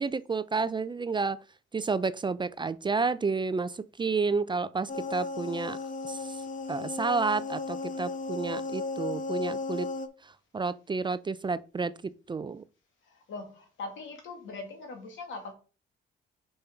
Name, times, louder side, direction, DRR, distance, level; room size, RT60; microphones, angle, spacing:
voice 1, 0.0-1.4 1.7-5.8 6.0-6.4 6.7-9.9 10.5-12.6, right 4 dB, 25° right, 0.4 m, -30 dB
sound 1, 4.9-10.1, left 3 dB, 40° left, 0.9 m, -35 dB
voice 2, 13.1-15.5, left 3 dB, 75° left, 2.3 m, -41 dB
5.5 x 5.3 x 4.5 m
cardioid pair, 90°, 20 cm